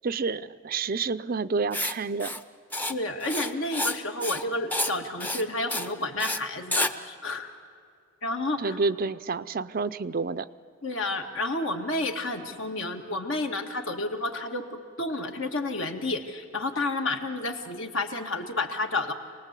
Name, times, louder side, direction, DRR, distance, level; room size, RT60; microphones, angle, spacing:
voice 1, 0.0-2.4 8.6-10.5, right 4 dB, 45° right, 13 dB, 0.5 m, -29 dB
Writing, 1.7-1.9 2.2-2.4 2.7-2.9 3.2-4.0 4.2-4.4 4.7-4.9 5.2-5.4 5.7-5.9 6.2-6.4 6.7-6.9, left 1 dB, 10° left, 0.7 m, -29 dB
voice 2, 2.9-7.5 8.2-8.8 10.8-19.1, left 2 dB, 65° left, 4 dB, 1.9 m, -30 dB
27.0 x 19.5 x 8.2 m, 2.2 s
head